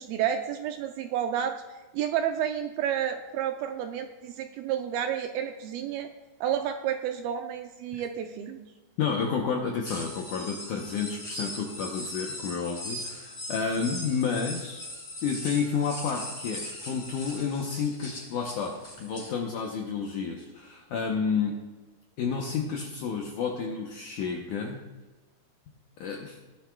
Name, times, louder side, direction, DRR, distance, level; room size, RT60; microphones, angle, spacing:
voice 1, 0.0-1.5 1.9-6.1 6.4-8.6, right 9 dB, 80° right, 5 dB, 2.3 m, -30 dB
voice 2, 9.0-14.9 15.2-21.6 22.2-24.8 26.0-26.4, left 6 dB, 75° left, 1 dB, 1.8 m, -30 dB
sound 1, 9.9-19.3, left 1 dB, 40° left, 4.6 m, -39 dB
18.0 x 11.0 x 2.3 m, 1.2 s
omnidirectional pair, 4.7 m